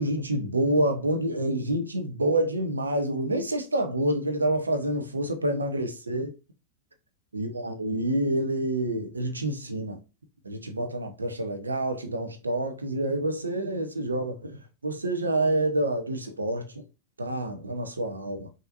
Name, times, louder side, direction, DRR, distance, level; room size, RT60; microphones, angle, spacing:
voice 1, 0.0-6.3 7.3-10.0 10.4-16.8 17.2-18.5, right 1 dB, 75° right, 0.8 m, -28 dB
5.5 x 2.9 x 2.5 m
figure-of-eight pair, 90°, 0 cm